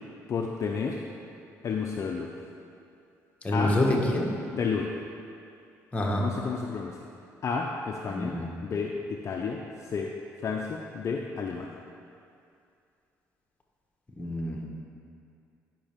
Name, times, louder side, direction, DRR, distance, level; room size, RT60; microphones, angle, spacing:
voice 1, 0.3-1.0 1.6-2.3 3.5-3.8 4.5-4.9 6.2-6.9 7.4-8.4 8.6-9.6 9.9-10.1 10.4-11.7, left 5 dB, 50° left, 1 dB, 0.5 m, -31 dB
voice 2, 3.4-4.3 5.9-6.2 8.1-8.5 14.2-14.6, left 1 dB, 20° left, -1 dB, 1.3 m, -26 dB
10.0 x 5.4 x 3.6 m, 2.5 s
cardioid pair, 85°, 7 cm